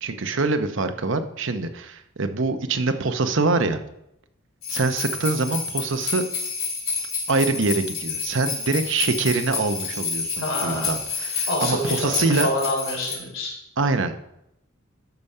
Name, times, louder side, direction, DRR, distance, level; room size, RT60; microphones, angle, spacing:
voice 1, 0.0-3.8 4.7-6.2 7.3-12.5 13.8-14.2, right 3 dB, 60° right, 8 dB, 0.8 m, -24 dB
sound 1, 4.6-13.1, left 5 dB, 45° left, 4.1 m, -29 dB
voice 2, 10.4-10.9 11.5-13.5, left 1 dB, 70° left, -1 dB, 3.5 m, -27 dB
13.0 x 5.2 x 5.5 m, 0.82 s
head